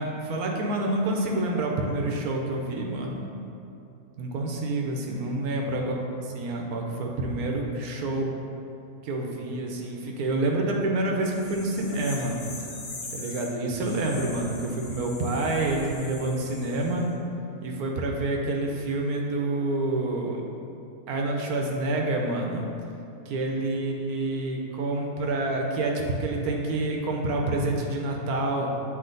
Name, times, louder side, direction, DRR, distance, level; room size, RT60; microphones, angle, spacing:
voice 1, 0.0-3.2 4.2-8.3 9.0-12.4 13.1-17.0 17.6-20.4 21.1-22.7 23.3-28.7, right 2 dB, 80° right, 1 dB, 1.2 m, -28 dB
sound 1, 11.3-17.1, left 2 dB, 60° left, 1.1 m, -41 dB
7.7 x 3.1 x 3.9 m, 2.7 s
omnidirectional pair, 1.6 m